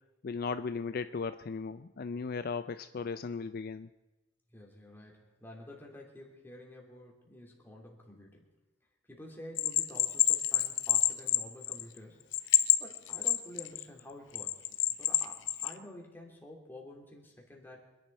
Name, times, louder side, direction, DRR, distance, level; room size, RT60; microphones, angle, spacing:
voice 1, 0.2-3.9, left 4 dB, 50° left, 11 dB, 0.4 m, -36 dB
voice 2, 4.5-8.5 9.1-12.4 12.8-17.8, left 1 dB, 10° left, -1 dB, 3.0 m, -50 dB
Bell, 9.6-12.0 12.3-13.8 14.3-15.7, left 13 dB, 80° left, 0.7 m, -27 dB
26.0 x 11.0 x 4.5 m, 1.1 s
head